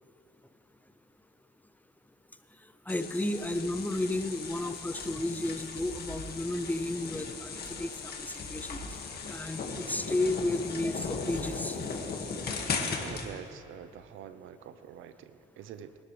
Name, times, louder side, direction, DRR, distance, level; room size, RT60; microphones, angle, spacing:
sound 1, 2.9-13.3, left 4 dB, 55° left, 1.9 m, -37 dB
voice 1, 2.9-8.8 9.3-11.8, left 1 dB, 10° left, 9 dB, 0.6 m, -32 dB
voice 2, 13.0-16.0, right 9 dB, 85° right, 12 dB, 0.7 m, -46 dB
23.0 x 12.5 x 3.3 m, 2.8 s
cardioid pair, 90°, 20 cm